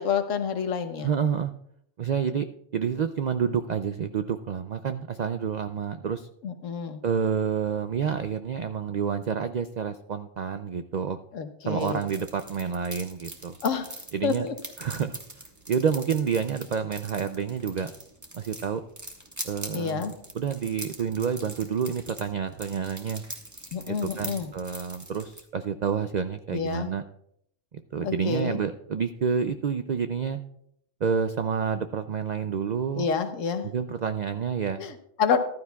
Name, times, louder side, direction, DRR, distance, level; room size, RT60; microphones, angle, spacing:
voice 1, 0.0-1.1 6.4-7.0 11.3-12.0 13.6-13.9 14.2-14.5 19.7-20.1 23.7-24.5 26.5-26.9 28.0-28.6 32.9-33.7 34.8-35.4, left 6 dB, 80° left, 9 dB, 1.3 m, -28 dB
voice 2, 1.0-1.5 2.0-2.5 2.7-6.3 7.0-11.2 11.7-13.6 14.1-14.5 14.8-15.2 15.7-17.9 18.3-18.8 19.4-23.2 23.9-27.0 27.9-30.4 31.0-33.1 33.6-34.8, right 7 dB, 75° right, 10 dB, 0.4 m, -28 dB
sound 1, 11.8-25.4, right 1 dB, 15° right, 1.1 m, -43 dB
14.5 x 12.5 x 2.3 m, 0.72 s
omnidirectional pair, 1.3 m